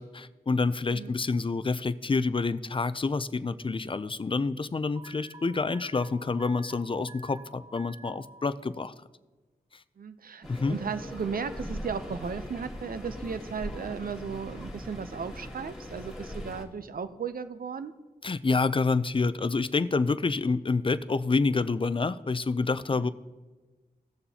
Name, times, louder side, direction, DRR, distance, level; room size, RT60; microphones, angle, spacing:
voice 1, 0.0-8.9 10.5-10.8 18.2-23.1, left 4 dB, 30° left, 14 dB, 0.5 m, -28 dB
Alarm, 5.0-8.4, right 3 dB, 25° right, 0.8 m, -50 dB
voice 2, 10.0-17.9 22.9-23.1, right 6 dB, 60° right, 12 dB, 0.6 m, -36 dB
sound 1, 10.4-16.7, left 1 dB, ahead, 2.1 m, -40 dB
17.0 x 6.7 x 2.8 m, 1.2 s
cardioid pair, 45°, 17 cm